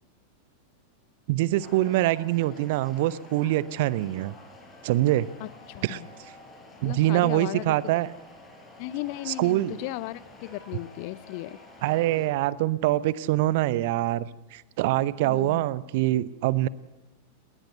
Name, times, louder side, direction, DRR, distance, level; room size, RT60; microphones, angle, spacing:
voice 1, 1.3-4.3 4.8-5.3 5.8-6.0 6.8-8.1 9.3-9.8 11.8-16.7, right 15 dB, 50° right, 19 dB, 0.7 m, -24 dB
sound 1, 1.6-12.3, left 2 dB, 20° left, 5.8 m, -49 dB
voice 2, 5.4-6.1 6.8-8.0 8.8-11.6 15.2-15.6, left 17 dB, 45° left, 19 dB, 0.7 m, -36 dB
20.5 x 19.5 x 8.0 m, 1.1 s
figure-of-eight pair, 90°, 0 cm